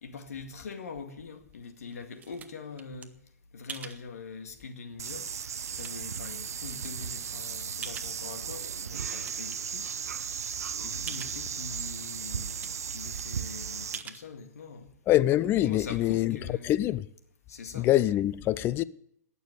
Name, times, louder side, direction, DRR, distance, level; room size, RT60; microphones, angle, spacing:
voice 1, 0.0-3.1 3.5-5.3 5.7-9.9 10.3-14.9 15.6-16.7 17.5-17.9, left 4 dB, 70° left, 2.1 m, -43 dB
sound 1, 1.5-3.1 3.7-4.0 4.7-4.8 5.3-6.2 6.8-6.9 7.8-8.4 8.8-9.5 10.0-10.1 10.3-10.4 11.1-11.4 12.0-12.1 12.3-12.9 13.2-13.3 13.9-14.3, right 6 dB, 20° right, 1.0 m, -44 dB
sound 2, 5.0-14.0, right 7 dB, 70° right, 0.6 m, -36 dB
voice 2, 15.1-16.4 16.6-17.0 17.8-18.8, left 14 dB, 25° left, 0.5 m, -24 dB
18.5 x 6.9 x 8.2 m
figure-of-eight pair, 110°, 8 cm